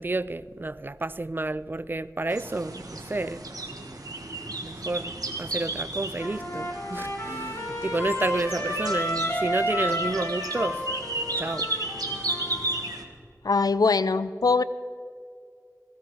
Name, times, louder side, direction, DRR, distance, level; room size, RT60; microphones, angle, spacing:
voice 1, 0.0-3.4 4.6-5.1 5.4-10.8 11.4-11.7, right 2 dB, 35° right, 17 dB, 0.3 m, -30 dB
sound 1, 2.3-13.0, right 2 dB, 75° right, 1.4 m, -34 dB
Trumpet, 6.2-12.8, equal, 45° left, 3.1 m, -31 dB
voice 2, 13.4-14.6, left 4 dB, 85° left, 15 dB, 0.4 m, -22 dB
15.5 x 15.5 x 4.6 m, 2.2 s
wide cardioid pair, 55°, 6 cm